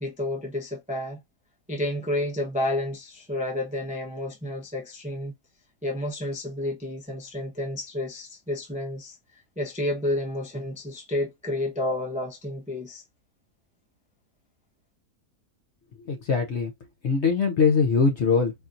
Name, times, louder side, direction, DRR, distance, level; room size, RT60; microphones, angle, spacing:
voice 1, 0.0-1.2 1.7-5.3 5.8-9.2 9.6-13.0, left 1 dB, 10° right, 0.5 m, -30 dB
voice 2, 16.1-16.7 17.0-18.5, left 5 dB, 55° left, 0.9 m, -22 dB
4.3 x 2.7 x 2.5 m
omnidirectional pair, 1.7 m